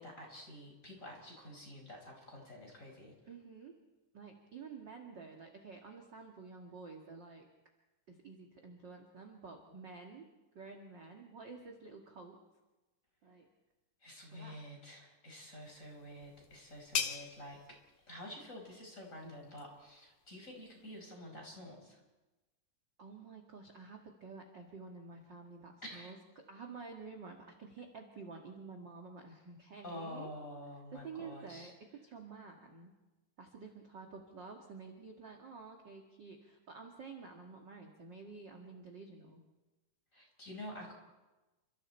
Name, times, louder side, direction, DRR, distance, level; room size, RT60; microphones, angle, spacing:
voice 1, 0.0-3.1 14.0-17.6 18.1-22.0 25.9-26.1 29.8-31.7 40.1-40.9, left 1 dB, 20° left, 0 dB, 5.4 m, -49 dB
voice 2, 3.3-3.7 4.1-7.4 8.1-10.2 10.5-12.4 13.2-13.5 14.3-14.6 23.0-30.3 30.9-32.9 33.4-39.4, right 4 dB, 40° right, 2 dB, 2.0 m, -50 dB
sound 1, 15.6-21.0, left 8 dB, 75° left, 2.9 m, -44 dB
29.5 x 25.5 x 4.5 m, 1.1 s
omnidirectional pair, 4.1 m